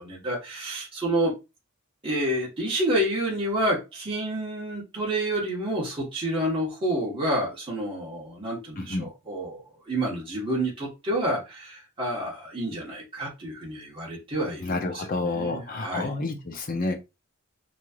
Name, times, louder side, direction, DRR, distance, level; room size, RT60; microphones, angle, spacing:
voice 1, 0.1-1.4 2.0-16.1, right 1 dB, 25° right, 1.1 m, -29 dB
voice 2, 14.6-16.9, left 2 dB, 45° left, 0.7 m, -29 dB
3.0 x 2.7 x 2.3 m
head